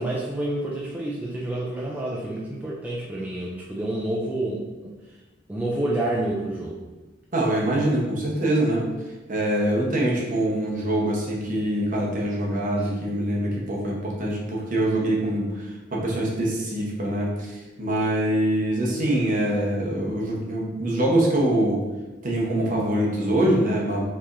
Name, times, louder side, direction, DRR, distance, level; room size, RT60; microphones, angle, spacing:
voice 1, 0.0-4.9 5.5-6.8, right 1 dB, 10° right, -5 dB, 0.4 m, -28 dB
voice 2, 7.3-8.8 9.3-21.8 22.2-24.0, right 1 dB, 45° right, -3 dB, 0.9 m, -24 dB
4.6 x 3.0 x 2.5 m, 1.2 s
head